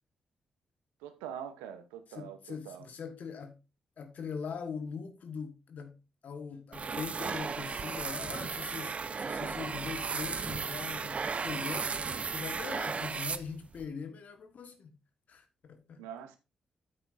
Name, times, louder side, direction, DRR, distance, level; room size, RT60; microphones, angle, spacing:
voice 1, 1.0-2.9 16.0-16.4, right 9 dB, 90° right, 1.0 m, -44 dB
voice 2, 2.1-3.6 4.0-6.0 6.2-14.9 15.3-16.0, left 6 dB, 65° left, 1.6 m, -42 dB
sound 1, 6.7-13.9, right 5 dB, 45° right, 0.6 m, -35 dB
9.2 x 8.5 x 2.7 m
hypercardioid pair, 40°, 3 cm